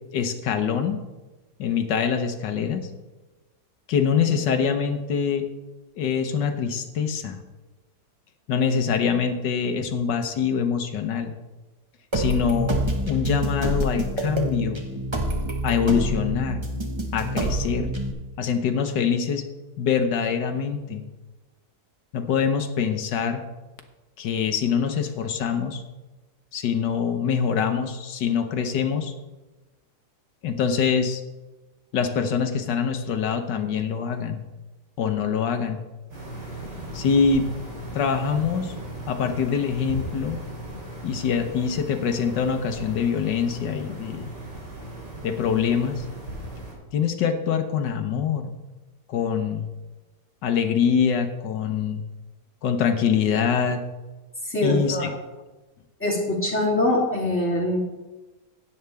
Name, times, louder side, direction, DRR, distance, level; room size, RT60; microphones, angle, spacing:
voice 1, 0.1-1.0 1.6-2.9 3.9-5.5 6.0-7.4 8.5-11.3 12.1-12.8 13.1-14.8 15.6-16.6 17.1-17.9 18.4-19.5 19.8-21.0 22.1-23.4 24.2-25.8 26.5-29.1 30.4-31.2 31.9-34.4 35.0-35.8 36.9-37.5 37.9-38.7 39.1-40.4 41.0-44.3 45.2-46.1 46.9-48.5 49.1-49.7 50.4-52.0 52.6-53.8 54.6-55.1, left 6 dB, 90° left, 6 dB, 1.6 m, -24 dB
sound 1, 12.1-18.1, right 1 dB, 20° right, 1.0 m, -27 dB
sound 2, 36.1-46.7, right 1 dB, 85° right, 4.4 m, -37 dB
voice 2, 54.4-55.0 56.0-57.8, left 1 dB, 5° left, -5 dB, 2.8 m, -23 dB
14.0 x 9.4 x 3.5 m, 1.1 s
omnidirectional pair, 1.8 m